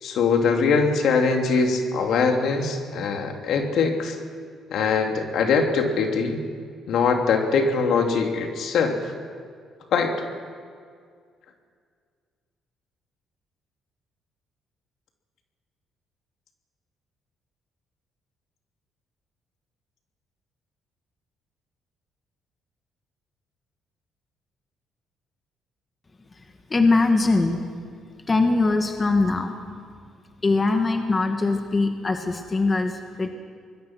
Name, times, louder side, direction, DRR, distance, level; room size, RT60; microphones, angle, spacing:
voice 1, 0.0-4.2 4.7-6.4 6.9-9.0 9.9-10.1, left 5 dB, 70° left, 3 dB, 2.9 m, -22 dB
voice 2, 26.7-27.6 28.3-29.6 30.4-33.3, left 3 dB, 25° left, 4 dB, 1.8 m, -21 dB
25.5 x 21.5 x 6.1 m, 2.1 s
cardioid pair, 105°, 0 cm